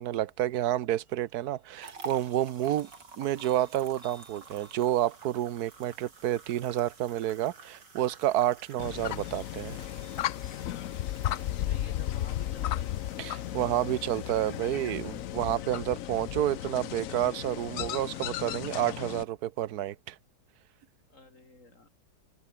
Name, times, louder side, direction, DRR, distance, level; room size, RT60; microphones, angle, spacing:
voice 1, 0.0-2.9 3.2-9.9 13.2-20.2, right 13 dB, 65° right, 1.3 m, -30 dB
sound 1, 0.6-15.6 16.1-16.2, equal, 5° left, 6.6 m, -65 dB
sound 2, 1.8-17.0 17.4-17.6 18.1-18.2, right 4 dB, 90° right, 4.1 m, -51 dB
sound 3, 8.8-19.2, left 12 dB, 65° left, 0.9 m, -35 dB
voice 2, 11.4-12.9 21.1-21.9, left 2 dB, 45° left, 5.7 m, -50 dB
omnidirectional pair, 1.9 m